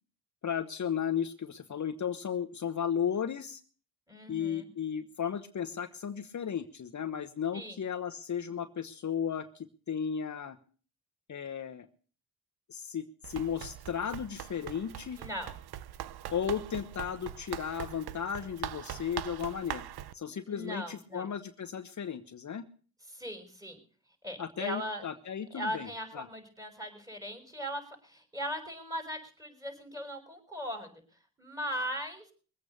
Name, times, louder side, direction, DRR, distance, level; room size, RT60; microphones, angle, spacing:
voice 1, 0.4-3.6 4.3-10.6 11.3-11.9 12.7-15.2 16.3-19.9 20.1-22.6 24.4-25.9 26.1-26.3, left 8 dB, 50° left, 8 dB, 1.1 m, -35 dB
voice 2, 4.1-4.7 7.5-7.8 15.2-15.5 20.5-21.3 23.1-23.8 24.2-25.0 25.5-30.9 31.4-32.2, equal, 10° right, 5 dB, 6.1 m, -39 dB
Run, 13.2-20.1, right 11 dB, 80° right, 0.9 m, -42 dB
22.0 x 8.5 x 6.7 m, 0.42 s
cardioid pair, 70°, 38 cm